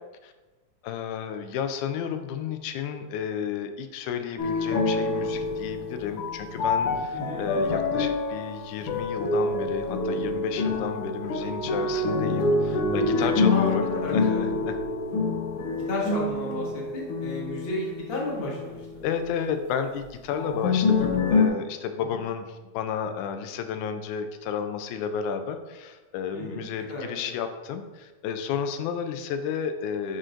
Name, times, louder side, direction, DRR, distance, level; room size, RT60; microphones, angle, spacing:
voice 1, 0.8-13.9 14.1-14.8 19.0-30.2, left 7 dB, 85° left, 8 dB, 2.0 m, -32 dB
sound 1, 4.4-19.0 20.3-21.5, left 3 dB, 65° left, 1.5 m, -26 dB
voice 2, 7.1-7.4 13.4-14.5 15.9-19.0 22.1-22.2 26.3-27.3, left 2 dB, 45° left, -4 dB, 0.7 m, -33 dB
10.5 x 3.8 x 2.5 m, 1.2 s
omnidirectional pair, 3.4 m